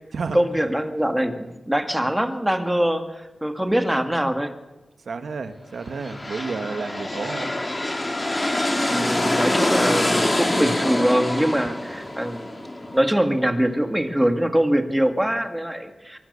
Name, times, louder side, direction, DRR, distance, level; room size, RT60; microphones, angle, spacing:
voice 1, 0.3-4.5 8.9-12.5 12.9-16.2, equal, 5° right, 7 dB, 2.0 m, -23 dB
voice 2, 5.1-7.6, right 4 dB, 75° right, 8 dB, 2.0 m, -31 dB
sound 1, 5.9-13.5, left 1 dB, 25° left, 4.0 m, -25 dB
24.0 x 22.0 x 6.8 m, 1.1 s
wide cardioid pair, 105°, 0 cm